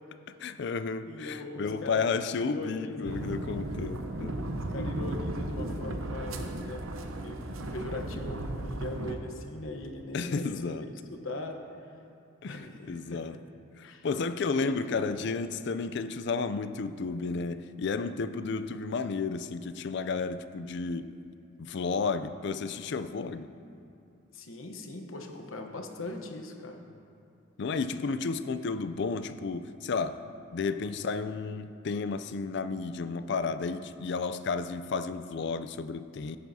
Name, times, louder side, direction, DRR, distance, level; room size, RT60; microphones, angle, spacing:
voice 1, 0.4-4.3 4.8-4.9 10.1-10.8 12.4-13.4 13.8-21.2 21.6-23.5 27.6-30.2 30.5-36.4, left 4 dB, 55° left, 12 dB, 0.4 m, -32 dB
voice 2, 1.0-2.1 2.5-3.3 4.7-6.8 7.1-7.4 7.7-10.6 11.1-11.6 12.4-13.4 13.8-14.1 14.6-15.0 24.3-26.8, left 2 dB, 80° left, 4 dB, 1.0 m, -40 dB
sound 1, 3.0-9.2, right 1 dB, 85° right, 0.8 m, -35 dB
16.5 x 9.3 x 2.8 m, 2.6 s
head